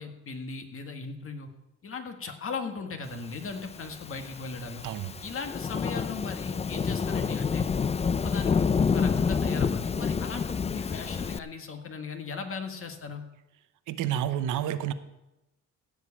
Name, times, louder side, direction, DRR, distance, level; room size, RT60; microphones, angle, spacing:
voice 1, 0.0-1.5 1.8-4.8 5.2-7.7 8.0-13.2, left 4 dB, 45° left, 5 dB, 1.8 m, -38 dB
Thunderstorm / Rain, 3.7-11.4, left 5 dB, 20° left, 0.4 m, -28 dB
voice 2, 13.9-14.9, right 10 dB, 85° right, 12 dB, 0.9 m, -29 dB
15.0 x 5.2 x 8.5 m, 0.97 s
cardioid pair, 90°, 30 cm